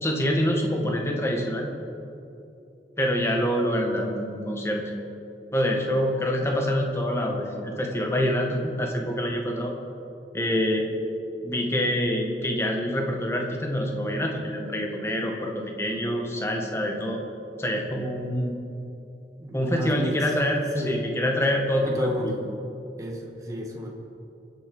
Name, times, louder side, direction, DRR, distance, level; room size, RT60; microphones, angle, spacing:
voice 1, 0.0-1.7 3.0-4.8 5.5-9.7 10.3-10.9 11.4-17.2 17.6-18.6 19.5-22.3, equal, 15° left, 1 dB, 1.7 m, -26 dB
voice 2, 19.4-20.2 20.7-21.0 21.8-22.4 23.0-23.9, equal, 20° right, -1 dB, 1.7 m, -32 dB
23.5 x 8.0 x 5.5 m, 2.8 s
head